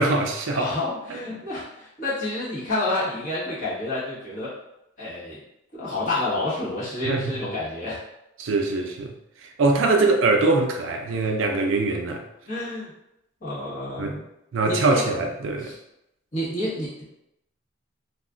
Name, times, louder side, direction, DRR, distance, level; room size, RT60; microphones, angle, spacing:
voice 1, 0.0-0.7 7.0-7.3 8.4-9.1 9.4-12.2 14.0-14.2 14.5-15.7, right 3 dB, 65° right, 2 dB, 0.4 m, -22 dB
voice 2, 0.5-4.6 5.0-5.4 5.7-8.0 12.5-12.9 13.4-14.2 14.6-15.0 15.6-15.7 16.3-17.0, left 2 dB, 40° left, -9 dB, 1.1 m, -29 dB
2.4 x 2.3 x 3.7 m, 0.85 s
head